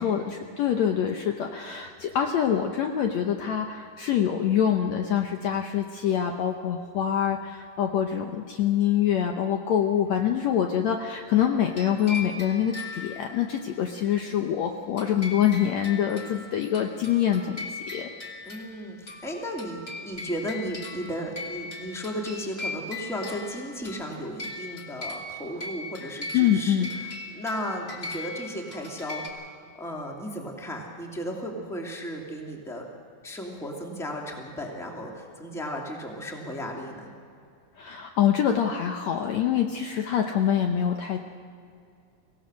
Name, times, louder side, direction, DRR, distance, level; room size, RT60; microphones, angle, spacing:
voice 1, 0.0-17.7 17.9-18.1 26.3-26.9 37.8-41.2, left 9 dB, 85° left, 4 dB, 1.5 m, -25 dB
sound 1, 11.6-13.6 15.0-29.3, left 2 dB, 25° left, 1.4 m, -39 dB
voice 2, 18.5-32.9 33.2-37.1, equal, ahead, 0 dB, 1.6 m, -35 dB
24.5 x 17.0 x 6.3 m, 2.4 s
omnidirectional pair, 4.4 m